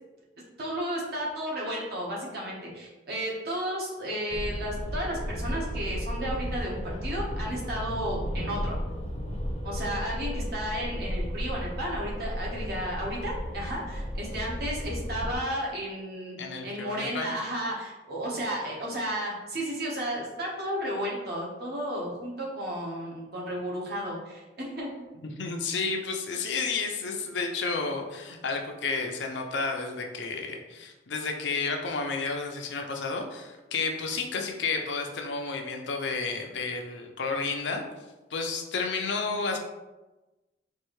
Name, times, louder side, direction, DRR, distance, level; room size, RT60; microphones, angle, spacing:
voice 1, 0.6-8.8 9.6-24.9, equal, 55° right, -4 dB, 1.1 m, -33 dB
sound 1, 4.3-15.4, equal, 35° left, 0.6 m, -34 dB
voice 2, 16.4-17.3 25.2-37.8 38.3-39.6, left 4 dB, 75° left, 3 dB, 0.6 m, -31 dB
4.5 x 2.6 x 3.1 m, 1.1 s
head